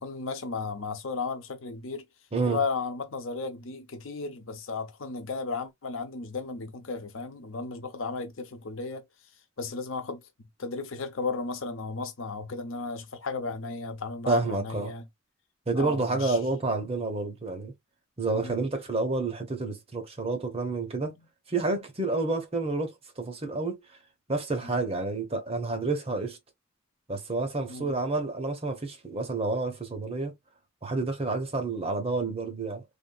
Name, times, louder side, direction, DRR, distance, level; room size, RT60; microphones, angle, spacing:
voice 1, 0.0-2.0 2.5-9.0 9.6-10.2 10.6-15.1 15.8-16.4 18.3-18.5 21.1-21.3 24.6-24.7 27.7-27.9, left 4 dB, 75° left, 0.7 m, -34 dB
voice 2, 14.3-14.9 15.7-17.7 18.2-21.1 21.5-22.9 23.2-23.8 24.3-26.4 27.1-30.3 30.8-32.8, right 3 dB, 30° right, 1.0 m, -29 dB
3.5 x 2.7 x 2.3 m
head